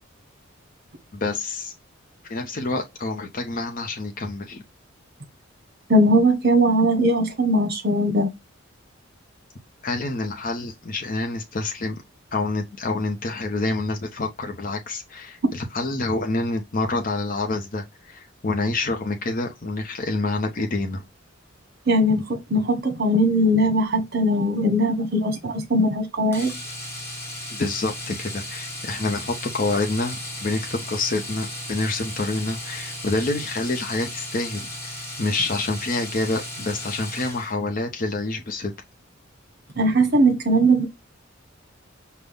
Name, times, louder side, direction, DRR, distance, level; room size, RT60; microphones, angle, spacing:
voice 1, 1.1-1.7 2.3-4.6 9.8-12.0 12.3-21.0 27.5-38.7, left 2 dB, 45° left, 0.7 m, -27 dB
voice 2, 5.9-8.3 21.9-26.5 39.8-40.8, right 1 dB, 50° right, 1.2 m, -20 dB
Domestic sounds home sounds, 26.3-37.6 39.7-39.8 40.1-40.2, left 1 dB, 15° left, 1.3 m, -35 dB
5.3 x 2.3 x 3.5 m
head